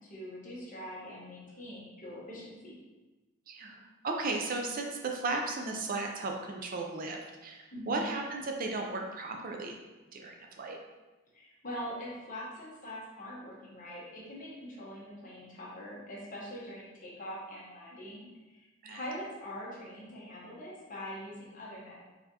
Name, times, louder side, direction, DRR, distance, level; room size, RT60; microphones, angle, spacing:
voice 1, 0.0-2.7 7.7-8.0 11.3-22.0, equal, 40° left, -5 dB, 1.1 m, -43 dB
voice 2, 3.5-9.7 10.1-10.8 18.8-19.0, right 3 dB, 45° right, 2 dB, 0.4 m, -35 dB
4.5 x 3.5 x 2.8 m, 1.2 s
head